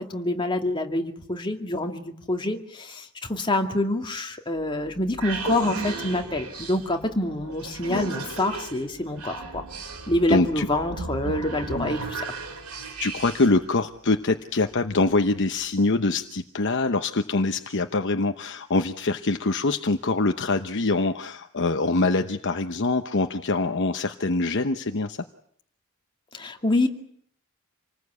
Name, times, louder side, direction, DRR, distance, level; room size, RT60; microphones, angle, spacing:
voice 1, 0.0-9.6 10.1-12.2 26.3-26.9, left 1 dB, 20° left, 3 dB, 2.3 m, -26 dB
sound 1, 4.6-13.6, right 3 dB, 85° right, 4.0 m, -35 dB
voice 2, 10.3-10.7 11.7-11.9 13.0-25.2, left 3 dB, 55° left, 6 dB, 1.0 m, -24 dB
27.5 x 19.5 x 8.4 m, 0.66 s
head